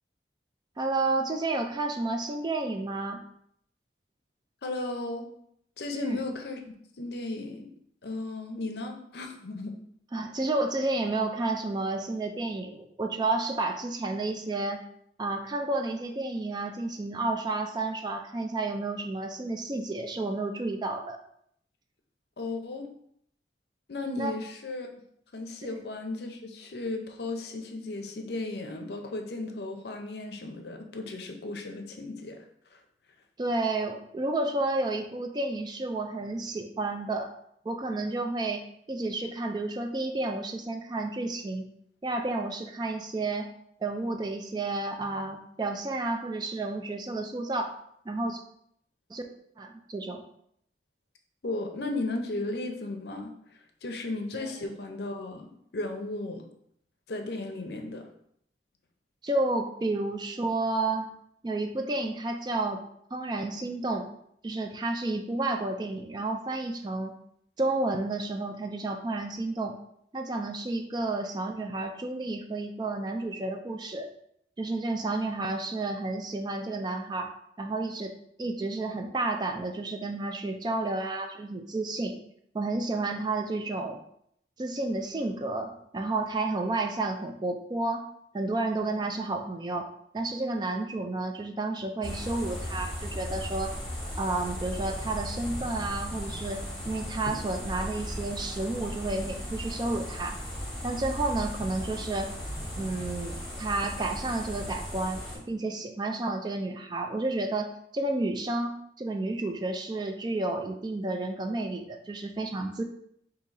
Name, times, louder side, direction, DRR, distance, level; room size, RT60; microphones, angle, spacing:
voice 1, 0.8-3.2 5.9-6.2 10.1-14.8 15.2-21.2 24.2-24.3 33.4-37.3 37.6-41.7 42.0-43.5 43.8-47.7 48.1-48.4 49.1-49.2 49.6-50.2 54.3-54.5 59.2-61.1 61.4-62.8 63.1-64.1 64.4-67.1 67.6-69.7 70.1-74.1 74.6-77.3 77.6-82.2 82.5-84.0 84.6-88.1 88.3-89.9 90.1-93.7 94.2-100.3 100.8-102.3 102.7-112.8, right 2 dB, 25° right, 5 dB, 0.3 m, -31 dB
voice 2, 4.6-5.3 5.8-7.7 8.0-9.7 22.4-22.9 23.9-24.9 25.3-32.4 32.7-32.8 51.4-53.3 53.8-56.4 57.1-58.1 97.3-97.4, left 2 dB, 60° left, 4 dB, 0.6 m, -35 dB
sound 1, 92.0-105.4, equal, 5° left, 1.7 m, -37 dB
3.9 x 2.7 x 4.0 m, 0.71 s
head